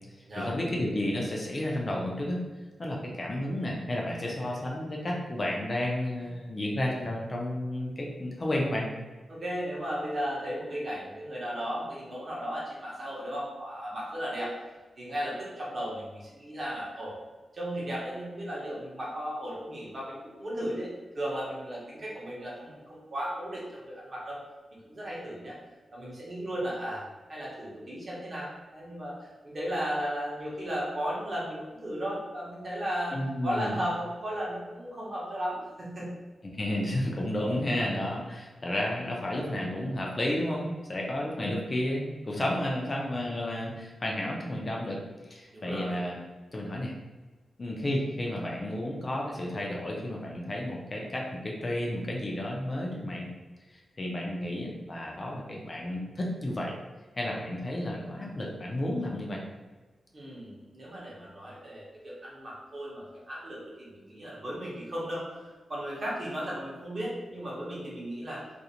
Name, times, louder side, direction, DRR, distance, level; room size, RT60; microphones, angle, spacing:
voice 1, 0.4-2.4 2.8-8.9 33.1-33.8 36.5-46.2 46.5-46.9 47.6-53.3 53.7-56.7 57.2-59.4, left 1 dB, 30° left, -1 dB, 0.4 m, -32 dB
voice 2, 9.3-14.5 15.0-17.2 17.5-20.9 21.1-24.4 24.8-25.6 25.9-27.0 27.3-36.1 45.5-46.0 60.1-68.4, equal, 40° right, -5 dB, 0.8 m, -35 dB
2.4 x 2.0 x 2.7 m, 1.2 s
wide cardioid pair, 140°, 0 cm